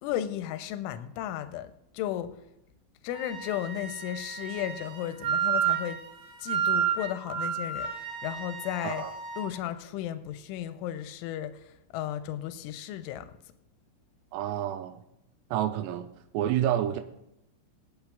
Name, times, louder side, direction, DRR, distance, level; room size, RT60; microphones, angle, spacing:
voice 1, 0.0-2.4 3.0-6.0 6.4-9.0 9.4-13.3, left 12 dB, 85° left, 10 dB, 2.9 m, -34 dB
Wind instrument woodwind instrument, 3.1-9.5, right 8 dB, 60° right, 4.8 m, -31 dB
voice 2, 14.3-15.0 15.5-16.1 16.3-17.0, right 11 dB, 85° right, 7 dB, 3.2 m, -28 dB
24.5 x 8.1 x 2.4 m, 0.84 s
omnidirectional pair, 5.9 m